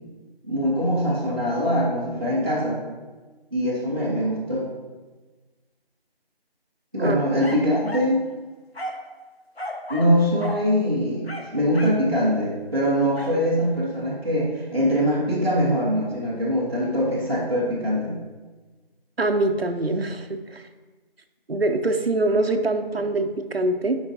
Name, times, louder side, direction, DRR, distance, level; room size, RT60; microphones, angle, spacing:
voice 1, 0.4-2.8 3.5-4.7 6.9-8.2 9.9-18.1, equal, 25° right, -13 dB, 1.3 m, -23 dB
sound 1, 7.4-8.1 8.7-9.1 9.6-10.1 10.4-10.6 11.2-12.0 13.2-13.4, left 1 dB, 85° left, 1.4 m, -34 dB
voice 2, 19.2-20.6 21.5-24.0, right 2 dB, 80° right, 6 dB, 0.8 m, -24 dB
10.5 x 5.1 x 2.8 m, 1.3 s
figure-of-eight pair, 170°, 30 cm